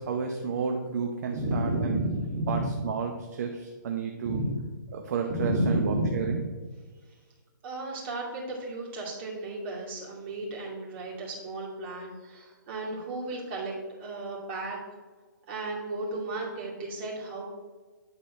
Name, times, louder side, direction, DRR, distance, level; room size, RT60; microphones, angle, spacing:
voice 1, 0.0-2.0 2.5-4.5 4.9-6.4, right 5 dB, 50° right, 3 dB, 0.8 m, -32 dB
voice 2, 1.3-2.8 4.2-4.5 5.3-6.4 7.6-13.7 14.0-14.8 15.5-17.4, right 1 dB, 35° right, -4 dB, 2.4 m, -32 dB
9.8 x 4.0 x 4.3 m, 1.4 s
hypercardioid pair, 160°, 11 cm